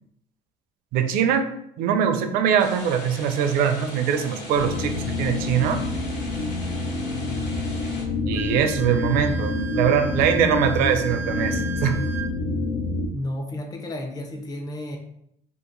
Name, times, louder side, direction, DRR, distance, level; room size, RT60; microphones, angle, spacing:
voice 1, 0.9-1.5 1.8-5.8 8.3-12.0, right 8 dB, 75° right, 7 dB, 0.5 m, -22 dB
sound 1, 2.6-8.0, left 2 dB, 55° left, 1.2 m, -40 dB
sound 2, 4.5-13.1, left 2 dB, 90° left, 0.7 m, -28 dB
Wind instrument woodwind instrument, 8.3-12.3, right 4 dB, 15° right, 0.4 m, -36 dB
voice 2, 13.1-15.0, left 1 dB, 25° left, 3 dB, 0.6 m, -32 dB
2.8 x 2.5 x 3.7 m, 0.75 s
cardioid pair, 125°, 15 cm